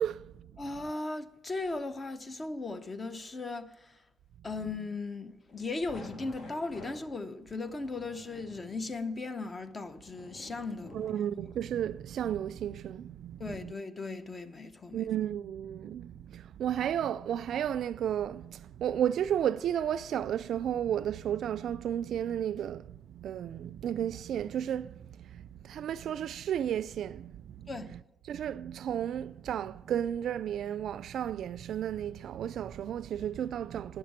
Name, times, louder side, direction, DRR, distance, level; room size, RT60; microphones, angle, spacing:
voice 1, 0.0-0.5 10.9-13.7 14.9-28.0 28.3-34.0, right 10 dB, 70° right, 0.3 m, -33 dB
voice 2, 0.6-4.0 4.4-10.9 13.4-15.1 27.7-27.9, left 3 dB, 30° left, 0.8 m, -37 dB
sound 1, 5.5-11.7, left 2 dB, 70° left, 1.8 m, -51 dB
9.5 x 6.7 x 8.6 m
cardioid pair, 90°, 0 cm